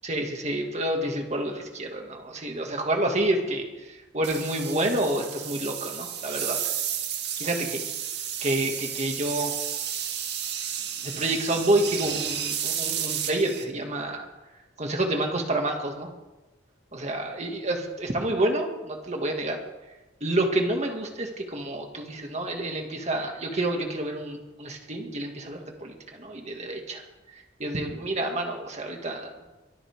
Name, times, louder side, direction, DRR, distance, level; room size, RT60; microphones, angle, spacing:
voice 1, 0.1-3.7 4.1-6.6 7.4-7.8 8.4-9.5 11.0-14.3 14.8-16.1 16.9-19.6 20.2-27.0 27.6-29.3, right 1 dB, 40° right, 2 dB, 2.2 m, -28 dB
sound 1, 4.2-13.6, right 9 dB, 60° right, 1.9 m, -32 dB
24.0 x 13.0 x 3.7 m, 1.1 s
head